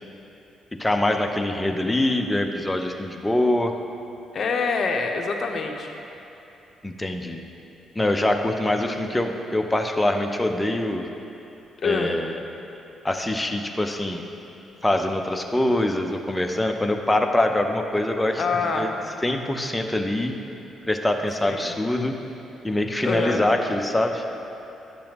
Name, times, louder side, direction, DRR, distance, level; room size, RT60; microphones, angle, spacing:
voice 1, 0.8-3.7 6.8-7.4 7.9-11.1 11.8-12.4 13.0-14.2 14.8-18.4 18.7-18.9 19.2-20.3 20.8-22.2 22.6-24.2, left 1 dB, 10° left, 4 dB, 0.6 m, -24 dB
voice 2, 4.3-6.0 11.8-12.2 18.4-18.9 21.5-21.7 23.0-23.5, left 4 dB, 50° left, 2 dB, 0.7 m, -25 dB
10.5 x 6.9 x 2.9 m, 3.0 s
cardioid pair, 90°, 0 cm